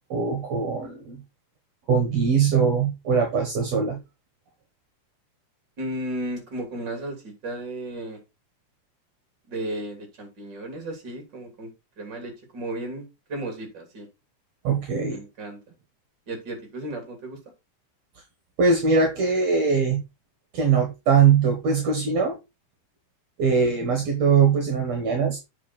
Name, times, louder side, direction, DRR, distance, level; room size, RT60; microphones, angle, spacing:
voice 1, 0.1-1.2 1.9-4.0 14.6-15.2 18.6-20.0 20.5-22.4 23.4-25.4, right 5 dB, 60° right, 4 dB, 2.5 m, -21 dB
voice 2, 5.8-8.2 9.5-11.7 12.0-14.1 15.1-15.6 16.3-17.4, right 1 dB, 35° right, 4 dB, 3.3 m, -34 dB
8.4 x 5.5 x 4.3 m, 0.25 s
omnidirectional pair, 3.5 m